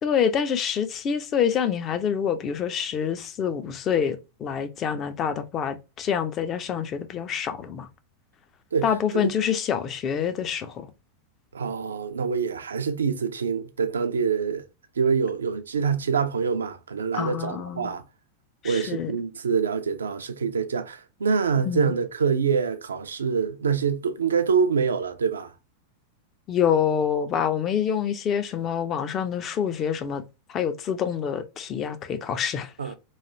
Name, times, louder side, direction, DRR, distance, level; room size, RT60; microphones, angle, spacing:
voice 1, 0.0-7.9 8.8-10.9 17.1-17.9 18.6-19.1 21.6-21.9 26.5-30.2 30.5-32.7, left 8 dB, 30° left, 0.5 m, -26 dB
voice 2, 8.7-9.3 11.5-14.7 15.0-18.0 18.6-25.5 32.8-32.9, right 6 dB, 70° right, 0.4 m, -25 dB
3.2 x 2.3 x 2.6 m
figure-of-eight pair, 90°, 0 cm